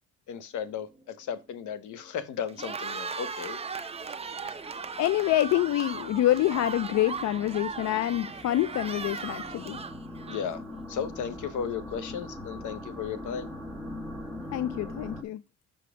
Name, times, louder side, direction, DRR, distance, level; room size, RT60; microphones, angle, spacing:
voice 1, 0.3-3.6 4.4-4.5 10.3-10.6 10.9-13.5, left 7 dB, 80° left, 1.0 m, -35 dB
sound 1, 0.9-1.6 2.0-2.1 2.6-2.7 3.1-15.2, left 1 dB, 5° left, 1.5 m, -43 dB
Cheering, 2.4-10.7, right 5 dB, 20° right, 0.6 m, -38 dB
voice 2, 4.4-9.8 10.3-10.5 14.5-15.4, left 13 dB, 65° left, 0.4 m, -27 dB
5.6 x 5.1 x 4.9 m
cardioid pair, 90°, 30 cm